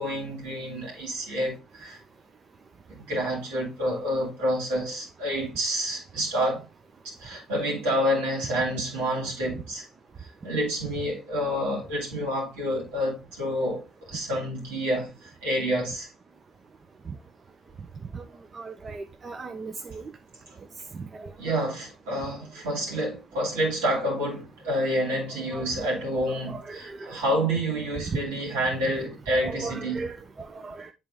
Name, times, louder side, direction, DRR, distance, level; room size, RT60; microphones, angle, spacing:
voice 1, 0.0-2.0 2.9-6.6 7.0-9.9 10.2-16.1 21.4-30.1, equal, 85° right, 2.7 m, -28 dB
voice 2, 18.5-20.0 20.9-21.3 25.5-25.9 26.3-27.1 28.1-28.2 28.8-28.9 29.4-30.2 30.5-30.9, right 4 dB, 35° right, 0.8 m, -37 dB
8.3 x 3.5 x 3.6 m
hypercardioid pair, 60°, 0 cm